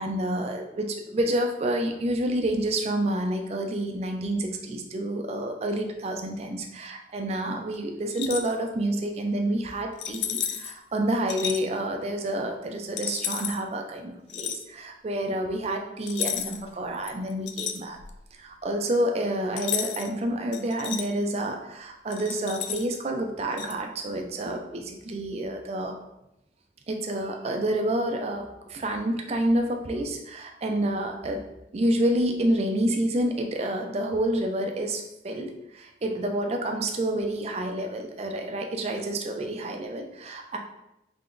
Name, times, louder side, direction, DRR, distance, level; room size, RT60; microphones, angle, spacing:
voice 1, 0.0-18.0 18.4-25.9 26.9-31.4 31.7-40.6, right 1 dB, 35° right, 3 dB, 0.4 m, -28 dB
sound 1, 8.1-8.5 10.0-10.7 11.3-11.6 13.0-13.6 14.3-14.6 16.1-16.7 17.0-18.2 19.6-20.1 20.5-21.1 22.1-23.0 23.6-23.7, left 9 dB, 80° left, 0.3 m, -32 dB
3.6 x 3.3 x 2.5 m, 0.86 s
head